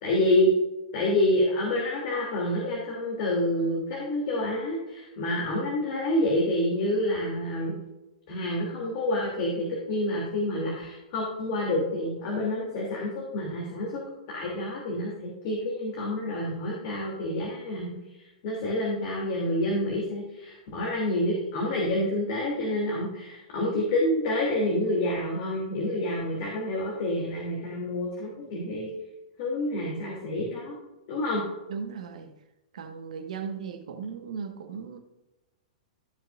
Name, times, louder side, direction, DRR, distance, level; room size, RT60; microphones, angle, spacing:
voice 1, 0.0-0.5 0.9-7.8 8.3-14.0 14.3-17.9 18.4-28.9 29.4-30.8 31.1-31.4, left 1 dB, 50° left, -3 dB, 2.9 m, -28 dB
voice 2, 31.7-32.3 32.7-35.0, right 6 dB, 75° right, 5 dB, 1.5 m, -37 dB
15.5 x 6.0 x 2.6 m, 1.0 s
hypercardioid pair, 115°, 4 cm